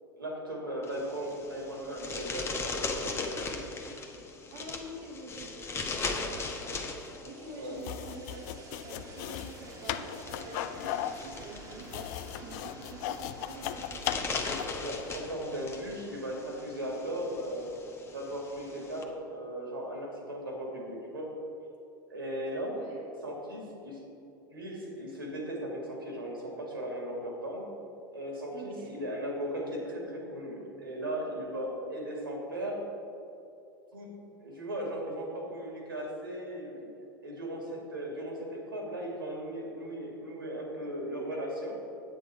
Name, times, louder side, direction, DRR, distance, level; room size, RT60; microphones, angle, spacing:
voice 1, 0.2-2.5 2.9-3.6 7.5-7.8 14.7-17.7 18.1-21.3 22.1-22.8 23.2-24.0 24.5-27.6 28.1-32.8 33.9-34.1 34.4-36.9 37.2-41.7, right 1 dB, 85° right, -1 dB, 2.3 m, -37 dB
sound 1, 0.8-19.0, left 3 dB, 20° left, 1.0 m, -40 dB
voice 2, 4.5-14.2 22.7-23.1 28.5-28.9, right 2 dB, 55° right, -2 dB, 1.2 m, -47 dB
sound 2, 6.6-17.6, right 2 dB, 30° right, 1.5 m, -52 dB
sound 3, 7.8-14.8, left 11 dB, 55° left, 0.5 m, -37 dB
9.3 x 8.4 x 4.7 m, 2.7 s
figure-of-eight pair, 85°, 11 cm